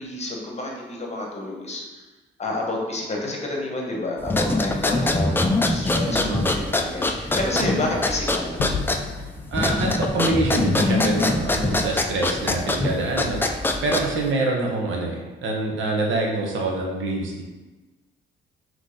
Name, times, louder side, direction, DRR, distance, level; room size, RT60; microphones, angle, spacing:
voice 1, 0.0-2.0 2.4-8.6, left 2 dB, 35° left, -1 dB, 1.0 m, -29 dB
sound 1, 4.2-14.3, left 2 dB, 10° left, 0.3 m, -23 dB
voice 2, 6.1-6.4 7.6-7.9 9.5-17.4, right 2 dB, 75° right, 0 dB, 0.9 m, -26 dB
Gunshot gunfire / Fireworks / Boom, 8.6-13.4, left 4 dB, 80° left, 0.6 m, -36 dB
3.9 x 3.1 x 3.7 m, 1.2 s
cardioid pair, 90°, 20 cm